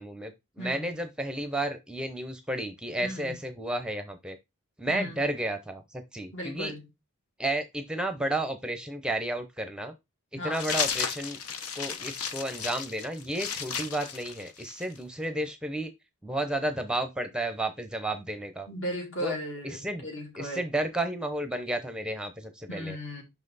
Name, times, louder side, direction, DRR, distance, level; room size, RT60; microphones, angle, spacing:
voice 1, 0.0-4.4 4.8-6.7 7.4-9.9 10.4-11.4 11.8-15.9 16.2-18.7 19.2-19.3 19.6-20.1 20.4-23.0, right 1 dB, 5° right, 0.6 m, -32 dB
voice 2, 0.6-0.9 3.0-3.3 4.9-5.1 6.3-6.9 10.4-10.6 18.7-20.6 22.7-23.2, equal, 60° left, 2.9 m, -36 dB
sound 1, 10.5-15.0, left 7 dB, 80° left, 0.9 m, -34 dB
5.9 x 5.6 x 4.0 m
head